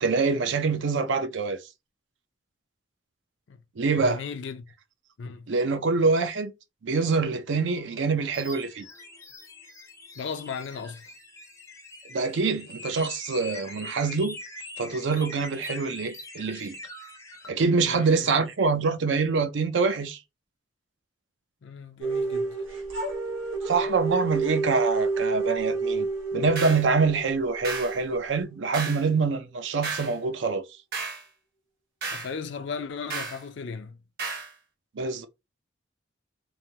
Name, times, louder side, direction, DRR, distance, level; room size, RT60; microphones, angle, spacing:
voice 1, 0.0-1.6 3.8-4.2 5.5-6.5 6.8-8.8 12.1-14.4 14.8-16.8 17.5-20.2 23.6-26.1 26.3-30.6 34.9-35.3, right 4 dB, 70° right, 0.5 m, -25 dB
voice 2, 4.0-4.7 5.2-5.5 10.1-11.1 17.7-18.3 21.6-22.7 32.1-34.0, left 5 dB, 65° left, 0.4 m, -36 dB
sound 1, 7.5-17.5, left 2 dB, 15° left, 0.5 m, -44 dB
sound 2, 22.0-28.9, right 3 dB, 85° right, 1.1 m, -30 dB
sound 3, 26.6-26.9 27.6-28.0 28.7-29.1 29.8-30.2 30.9-31.2 32.0-32.3 33.1-33.4 34.2-34.5, right 4 dB, 50° right, 0.9 m, -33 dB
3.2 x 2.1 x 2.8 m
head